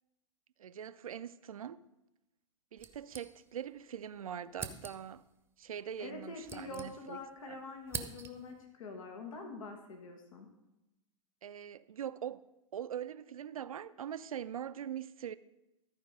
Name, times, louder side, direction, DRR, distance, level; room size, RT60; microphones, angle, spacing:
voice 1, 0.6-1.8 2.7-5.2 5.6-7.2 7.5-7.6 11.4-12.4 12.7-15.4, right 9 dB, 80° right, 0.4 m, -42 dB
sound 1, 2.8-3.8 4.0-4.1 4.5-5.2 6.1-7.3 7.6-8.6, right 6 dB, 15° right, 0.8 m, -45 dB
voice 2, 6.0-10.5, left 3 dB, 70° left, 1.4 m, -45 dB
13.5 x 4.6 x 5.2 m
figure-of-eight pair, 100°, 18 cm